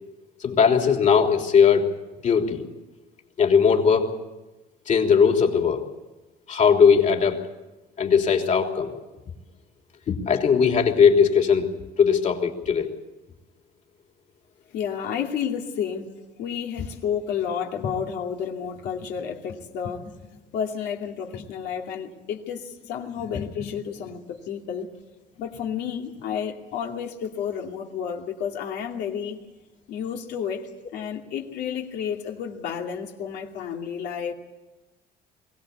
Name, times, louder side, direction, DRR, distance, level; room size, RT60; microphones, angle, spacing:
voice 1, 0.4-1.9 2.2-2.6 3.4-4.1 4.9-5.8 6.5-7.4 8.0-8.9 10.1-11.6 12.0-12.9, left 6 dB, 45° left, 3 dB, 3.4 m, -19 dB
voice 2, 14.7-24.9 25.4-29.4 29.9-34.3, left 7 dB, 80° left, 1 dB, 2.6 m, -31 dB
22.5 x 17.5 x 8.4 m, 1.1 s
cardioid pair, 110°, 17 cm